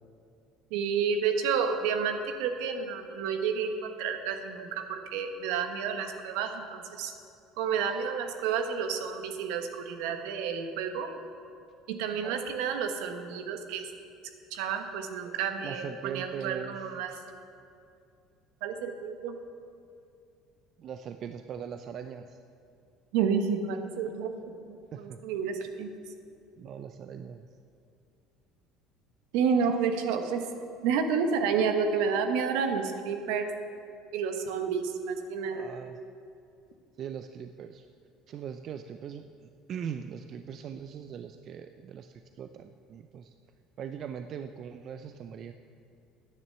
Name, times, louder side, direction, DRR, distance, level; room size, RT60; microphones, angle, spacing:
voice 1, 0.7-7.1 7.6-11.1 11.9-13.9 14.5-17.1 18.6-19.3 23.1-25.9 29.3-30.5 30.8-33.5 34.1-35.7, right 6 dB, 80° right, 6 dB, 1.2 m, -30 dB
voice 2, 15.6-16.7 20.8-22.4 24.9-25.2 26.6-27.5 35.5-36.0 37.0-37.9 38.3-39.3 39.7-43.3 43.8-45.5, right 8 dB, 50° right, 8 dB, 0.5 m, -40 dB
10.5 x 9.7 x 6.9 m, 2.5 s
supercardioid pair, 85°, 0 cm